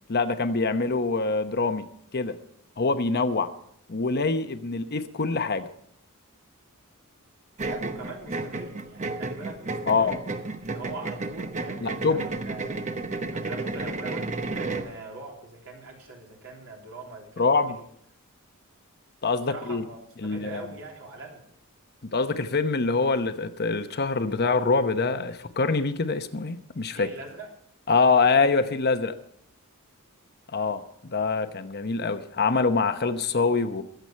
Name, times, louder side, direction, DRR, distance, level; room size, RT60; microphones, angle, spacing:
voice 1, 0.1-1.8 2.1-2.3 2.8-3.5 3.9-5.7 9.9-10.2 11.8-12.2 17.4-17.8 19.2-19.8 20.2-20.6 22.1-27.1 27.9-29.2 30.5-33.8, left 4 dB, 50° left, 9 dB, 1.0 m, -24 dB
sound 1, 7.6-14.9, right 3 dB, 35° right, 0.9 m, -32 dB
voice 2, 7.7-10.2 10.6-12.8 13.3-17.8 19.5-21.5 26.9-27.5, right 2 dB, 65° right, -1 dB, 3.5 m, -42 dB
22.5 x 8.0 x 4.5 m, 0.69 s
head